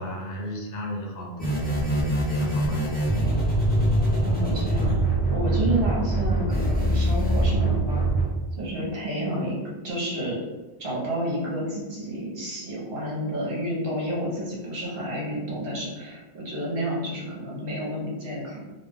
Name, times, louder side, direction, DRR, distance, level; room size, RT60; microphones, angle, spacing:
voice 1, 0.0-1.6 2.3-2.8, equal, 65° left, -1 dB, 0.8 m, -34 dB
sound 1, 1.4-8.2, right 1 dB, 10° left, 0.7 m, -23 dB
voice 2, 4.2-5.0 5.3-8.0 8.6-9.6 9.8-10.4 10.8-18.6, right 1 dB, 60° right, -5 dB, 1.0 m, -30 dB
2.3 x 2.2 x 3.3 m, 1.3 s
omnidirectional pair, 1.1 m